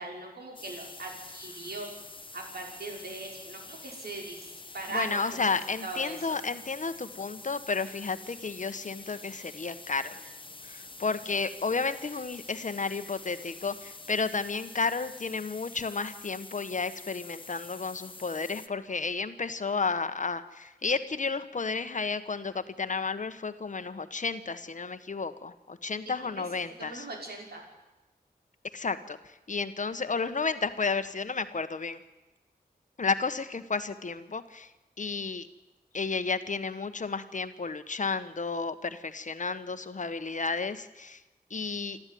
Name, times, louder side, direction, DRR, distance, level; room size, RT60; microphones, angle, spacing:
voice 1, 0.0-1.9 2.3-4.5 4.7-5.2 5.8-6.4 26.4-26.5 26.8-27.6, right 2 dB, 80° right, 0 dB, 5.9 m, -39 dB
sound 1, 0.6-18.7, left 3 dB, 30° left, 1.3 m, -47 dB
voice 2, 4.9-10.2 10.6-27.1 28.7-32.0 33.0-34.7 35.0-35.5 35.9-41.2 41.5-42.0, left 4 dB, 50° left, 11 dB, 1.3 m, -32 dB
28.0 x 13.0 x 9.4 m, 1.0 s
wide cardioid pair, 90°, 16 cm